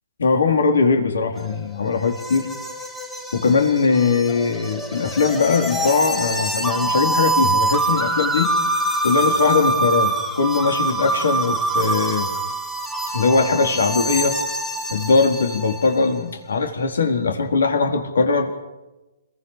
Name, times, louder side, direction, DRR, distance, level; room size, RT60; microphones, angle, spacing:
voice 1, 0.2-2.5 3.3-8.5 9.0-12.3 13.1-14.4 14.9-18.5, left 4 dB, 85° left, 4 dB, 4.3 m, -20 dB
sound 1, 1.4-16.0, right 2 dB, 5° left, 1.2 m, -25 dB
30.0 x 22.5 x 5.0 m, 1.1 s
hypercardioid pair, 175°, 0 cm